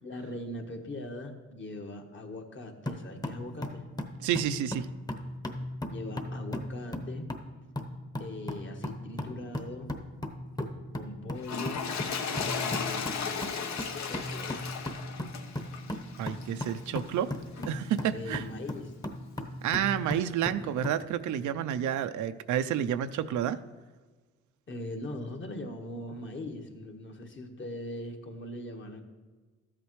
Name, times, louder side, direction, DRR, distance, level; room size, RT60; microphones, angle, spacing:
voice 1, 0.0-3.9 5.9-7.3 8.2-10.0 10.9-11.9 12.6-13.7 14.0-14.7 18.1-18.9 24.7-29.0, left 1 dB, 40° left, 3 dB, 1.4 m, -40 dB
sound 1, 2.9-21.0, left 1 dB, 15° left, 1.0 m, -38 dB
voice 2, 4.2-4.9 16.2-17.3 17.6-18.4 19.6-23.6, right 10 dB, 75° right, 11 dB, 0.6 m, -30 dB
Toilet flush, 11.4-16.9 17.5-17.7, left 6 dB, 65° left, 1.0 m, -35 dB
13.0 x 8.2 x 3.2 m, 1.3 s
cardioid pair, 90°, 30 cm